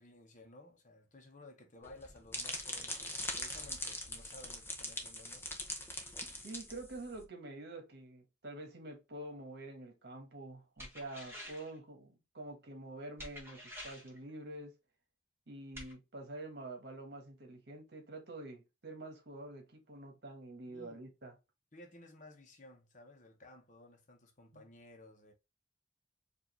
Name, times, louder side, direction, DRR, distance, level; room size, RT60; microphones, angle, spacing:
voice 1, 0.0-5.5 20.7-21.0 21.7-25.3, left 2 dB, 45° left, 0.9 m, -56 dB
sound 1, 1.8-7.2, left 1 dB, 15° left, 0.7 m, -42 dB
voice 2, 6.4-14.7 15.5-21.4 24.5-24.7, right 2 dB, 60° right, 1.3 m, -47 dB
sound 2, 10.8-11.8 13.2-14.2 15.7-15.9, equal, 15° right, 1.3 m, -48 dB
4.7 x 2.6 x 3.2 m
head